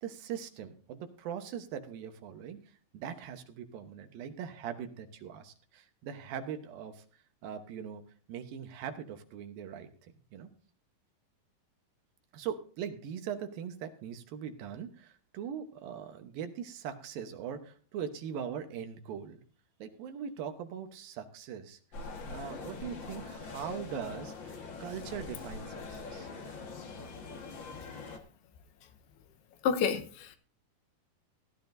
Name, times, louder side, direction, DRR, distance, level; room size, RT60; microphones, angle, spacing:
voice 1, 0.0-7.0 7.4-8.0 8.3-10.5 12.3-19.4 19.8-21.8 22.3-26.3, right 8 dB, 70° right, 2.7 m, -41 dB
sound 1, 21.9-28.2, left 4 dB, 55° left, 1.3 m, -43 dB
voice 2, 29.6-30.4, left 7 dB, 90° left, 3.0 m, -29 dB
16.0 x 12.5 x 2.6 m
omnidirectional pair, 4.5 m